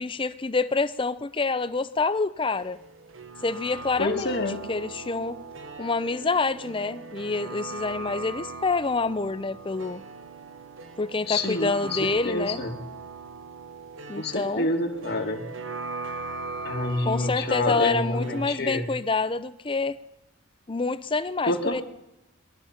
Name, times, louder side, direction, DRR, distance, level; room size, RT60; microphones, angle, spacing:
voice 1, 0.0-2.8 3.4-4.4 4.7-5.4 5.8-10.0 11.0-12.6 14.1-14.7 17.0-20.0 20.7-21.8, left 3 dB, 25° left, 14 dB, 0.5 m, -27 dB
sound 1, 2.4-18.6, right 3 dB, 65° right, 1.2 m, -40 dB
voice 2, 4.0-4.6 11.3-12.8 14.2-15.4 16.6-18.9 21.5-21.8, left 2 dB, 50° left, 5 dB, 1.6 m, -28 dB
21.0 x 12.0 x 5.7 m, 0.89 s
head